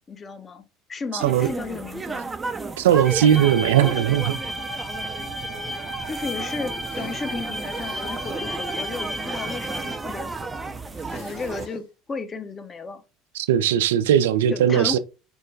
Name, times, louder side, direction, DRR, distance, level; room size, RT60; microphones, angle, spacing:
voice 1, 0.1-2.3 6.1-10.5 11.1-13.0 14.5-15.0, left 4 dB, 30° left, 0.8 m, -34 dB
voice 2, 1.1-1.5 2.8-4.4 13.3-15.0, right 10 dB, 80° right, 0.3 m, -19 dB
sound 1, 1.2-11.7, right 4 dB, 20° right, 0.5 m, -34 dB
sound 2, 2.8-4.3 6.8-8.3 10.9-11.9, left 3 dB, 90° left, 1.6 m, -46 dB
sound 3, 3.1-10.0, equal, 5° left, 1.0 m, -33 dB
4.6 x 2.2 x 3.2 m
hypercardioid pair, 75°, 0 cm